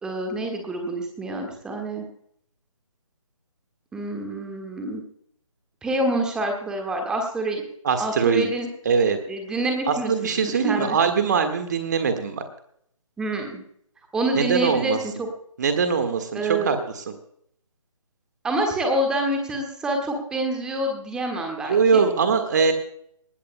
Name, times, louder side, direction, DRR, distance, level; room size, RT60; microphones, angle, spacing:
voice 1, 0.0-2.0 3.9-5.0 5.8-7.6 8.0-8.7 9.3-10.1 10.4-11.0 13.2-13.6 14.1-15.3 16.3-16.8 18.4-22.0, right 1 dB, 5° right, 3 dB, 1.6 m, -27 dB
voice 2, 7.8-8.5 8.8-9.2 9.9-12.4 14.3-15.0 15.6-17.1 21.6-22.7, right 5 dB, 30° right, 8 dB, 1.6 m, -22 dB
19.5 x 17.0 x 2.2 m, 0.68 s
figure-of-eight pair, 150°, 18 cm